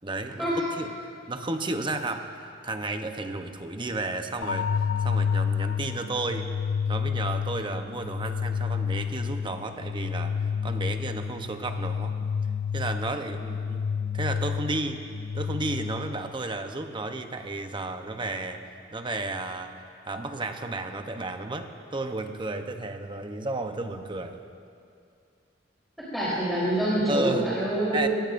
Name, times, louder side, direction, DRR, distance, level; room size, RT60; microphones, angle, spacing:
voice 1, 0.0-0.5 0.8-0.9 1.3-4.7 5.0-6.5 6.9-12.2 12.7-13.9 14.1-15.1 15.3-24.4 27.1-27.6 27.9-28.1, right 2 dB, 25° right, 6 dB, 0.8 m, -33 dB
sound 1, 4.4-16.4, left 6 dB, 75° left, 0.4 m, -30 dB
voice 2, 26.0-28.1, right 1 dB, ahead, -10 dB, 3.6 m, -26 dB
23.5 x 18.0 x 2.6 m, 2.4 s
head